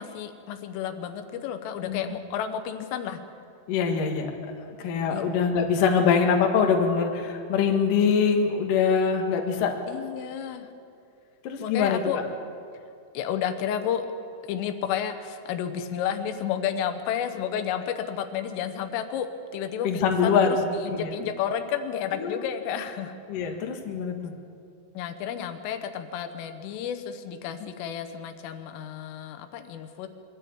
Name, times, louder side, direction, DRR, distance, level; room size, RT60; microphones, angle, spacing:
voice 1, 0.0-3.2 5.1-5.2 9.9-10.7 11.6-12.2 13.2-14.1 14.4-20.4 20.7-23.6 25.0-30.1, left 9 dB, 85° left, 8 dB, 3.6 m, -31 dB
voice 2, 3.7-9.7 11.4-12.0 19.8-20.6 20.9-21.1 22.1-22.4 23.3-24.3, left 6 dB, 60° left, 2 dB, 2.6 m, -24 dB
23.5 x 13.0 x 8.6 m, 2.4 s
omnidirectional pair, 5.6 m